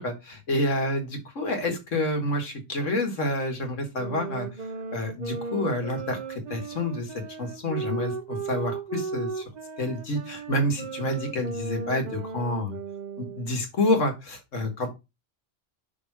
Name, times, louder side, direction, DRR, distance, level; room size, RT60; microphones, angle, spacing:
voice 1, 0.0-4.5 4.9-9.4 9.8-12.8 13.2-14.9, left 1 dB, 90° left, 4 dB, 2.2 m, -28 dB
sound 1, 3.9-13.6, right 4 dB, 40° right, 0.8 m, -36 dB
6.4 x 3.6 x 5.9 m, 0.25 s
omnidirectional pair, 1.2 m